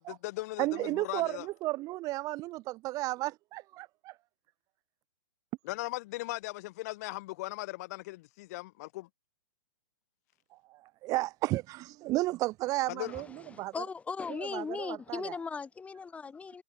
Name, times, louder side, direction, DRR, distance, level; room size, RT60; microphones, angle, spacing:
voice 1, 0.1-1.5 5.6-9.1 12.9-13.1, left 20 dB, 45° left, 5.4 m, -38 dB
voice 2, 0.6-4.2 10.7-13.3 13.6-13.7 14.4-15.3, right 18 dB, 30° right, 2.4 m, -33 dB
voice 3, 13.5-16.6, left 5 dB, 10° left, 4.2 m, -38 dB
hypercardioid pair, 130°, 12 cm